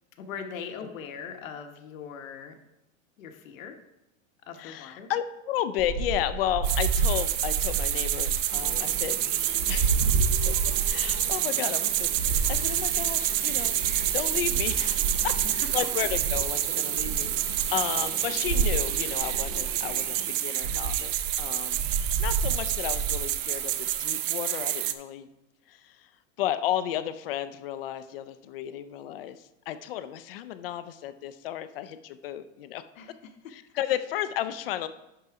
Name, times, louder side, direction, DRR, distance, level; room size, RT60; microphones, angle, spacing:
voice 1, 0.2-2.5 3.2-3.8 4.5-5.1 15.2-15.3 32.9-33.5, left 6 dB, 85° left, 5 dB, 1.3 m, -41 dB
voice 2, 4.6-13.8 14.1-14.9 15.2-25.3 25.7-26.1 26.4-32.8 33.5-34.9, left 11 dB, 45° left, 12 dB, 0.5 m, -33 dB
sound 1, 5.8-11.4 11.7-16.6 16.9-18.0 18.2-20.0 20.6-24.0, right 4 dB, 50° right, 1.0 m, -30 dB
sound 2, 6.6-24.9, right 13 dB, 70° right, 0.7 m, -28 dB
sound 3, 8.5-20.3, left 5 dB, 25° left, 1.0 m, -45 dB
11.0 x 4.0 x 4.8 m, 0.90 s
supercardioid pair, 175°, 39 cm